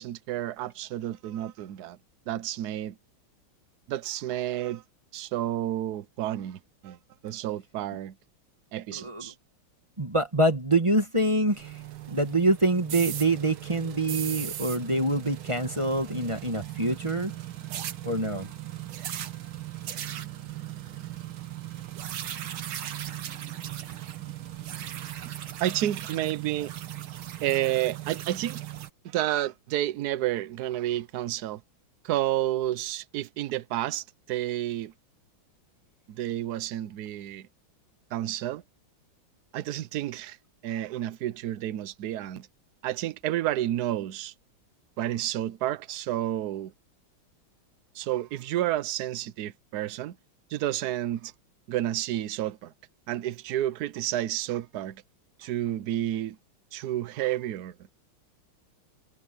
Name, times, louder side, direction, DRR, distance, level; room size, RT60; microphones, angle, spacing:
voice 1, 0.0-2.0 2.3-2.9 3.9-4.8 5.1-7.0 7.2-8.2 8.7-9.3 25.6-26.7 27.4-28.6 29.0-31.6 32.0-34.9 36.1-37.5 38.1-38.6 39.5-40.4 40.6-42.5 42.8-44.3 45.0-46.7 47.9-50.2 50.5-51.3 51.7-52.7 53.1-55.0 55.4-56.4 56.7-57.7, right 13 dB, 65° right, 1.1 m, -30 dB
voice 2, 8.9-9.3 10.0-11.8 12.1-17.3 18.0-18.5, right 2 dB, 15° right, 1.4 m, -25 dB
sound 1, 11.5-28.9, right 12 dB, 80° right, 2.0 m, -38 dB
omnidirectional pair, 2.3 m